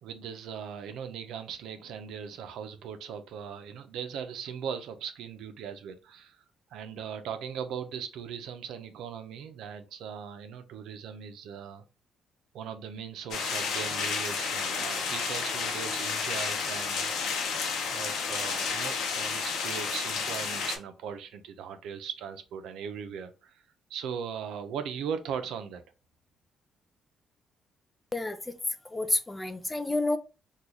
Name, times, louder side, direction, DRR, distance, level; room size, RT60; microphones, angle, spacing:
voice 1, 0.0-6.4 6.7-11.8 12.5-17.1 17.9-23.6 23.9-25.8, right 7 dB, 85° right, 0.5 m, -39 dB
sound 1, 13.3-20.8, left 5 dB, 85° left, 0.7 m, -31 dB
voice 2, 28.1-28.5 28.8-30.2, left 2 dB, 15° left, 0.4 m, -29 dB
3.0 x 2.3 x 3.7 m
cardioid pair, 90°, 0 cm